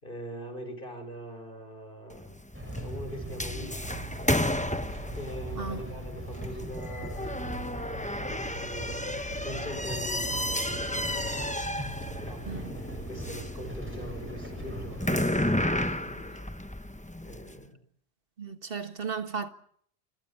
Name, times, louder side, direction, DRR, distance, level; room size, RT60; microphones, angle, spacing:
voice 1, 0.0-2.3 2.8-4.0 5.1-11.0 12.2-16.5 17.2-17.8, equal, 55° left, 4.9 m, -43 dB
sound 1, 2.1-17.5, left 1 dB, 10° left, 1.0 m, -33 dB
sound 2, 2.5-15.5, right 1 dB, 10° right, 7.3 m, -39 dB
voice 2, 18.4-19.5, right 5 dB, 65° right, 1.8 m, -35 dB
29.0 x 17.0 x 8.5 m
omnidirectional pair, 1.0 m